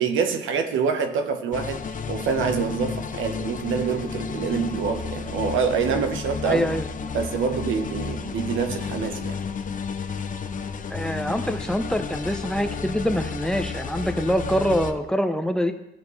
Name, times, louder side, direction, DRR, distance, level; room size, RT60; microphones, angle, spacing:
voice 1, 0.0-1.8 2.1-6.7 7.1-9.4, right 6 dB, 80° right, 1.1 m, -26 dB
sound 1, 1.5-14.9, left 5 dB, 40° left, 0.8 m, -32 dB
voice 2, 6.4-7.1 10.9-15.7, equal, 5° left, 0.8 m, -25 dB
14.0 x 7.4 x 3.2 m
cardioid pair, 90°, 20 cm